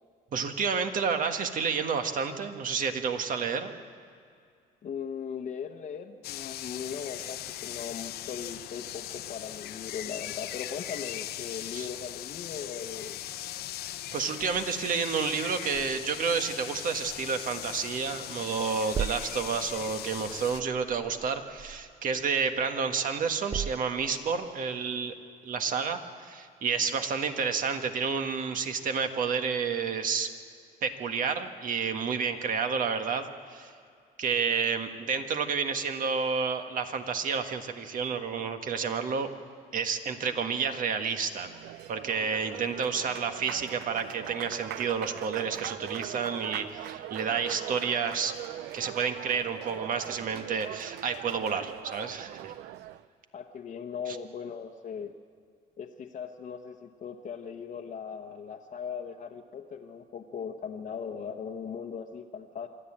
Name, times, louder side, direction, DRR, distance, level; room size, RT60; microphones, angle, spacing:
voice 1, 0.3-3.7 11.7-11.9 14.1-25.1 25.4-30.3 30.8-33.7 34.2-39.3 39.7-41.5 41.9-48.3 48.7-52.5, right 6 dB, 55° right, 7 dB, 1.6 m, -30 dB
voice 2, 4.8-13.2 53.3-55.1 55.8-62.7, left 7 dB, 45° left, 1 dB, 1.0 m, -39 dB
sound 1, 6.2-20.6, left 13 dB, 70° left, 0.7 m, -39 dB
sound 2, 15.7-18.3 18.6-22.8 23.2-24.5, right 7 dB, 25° right, 0.4 m, -41 dB
Applause, 41.2-53.1, right 13 dB, 80° right, 0.5 m, -41 dB
26.5 x 11.5 x 8.8 m, 2.2 s
cardioid pair, 110°, 17 cm